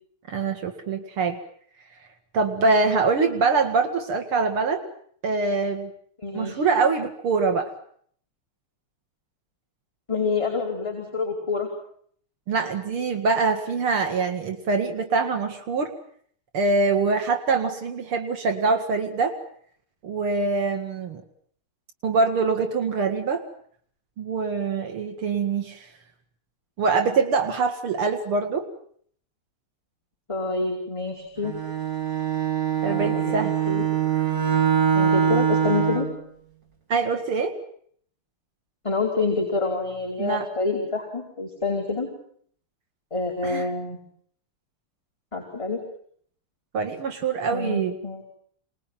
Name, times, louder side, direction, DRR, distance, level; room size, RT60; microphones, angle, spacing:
voice 1, 0.3-1.4 2.3-4.8 5.2-5.9 6.3-7.7 12.5-16.0 16.5-19.4 20.0-21.2 22.0-23.4 24.2-25.9 26.8-28.7 32.8-33.5 36.9-37.6 40.2-40.5 43.4-43.7 46.7-48.0, right 4 dB, 80° right, 7 dB, 2.9 m, -24 dB
voice 2, 6.2-6.6 10.1-11.7 30.3-31.5 32.8-33.8 34.9-36.1 38.8-42.1 43.1-44.0 45.3-45.8 47.5-48.2, left 3 dB, 15° left, -3 dB, 5.1 m, -27 dB
Bowed string instrument, 31.4-36.2, right 8 dB, 55° right, 5.4 m, -23 dB
27.0 x 21.0 x 9.2 m, 0.63 s
omnidirectional pair, 2.4 m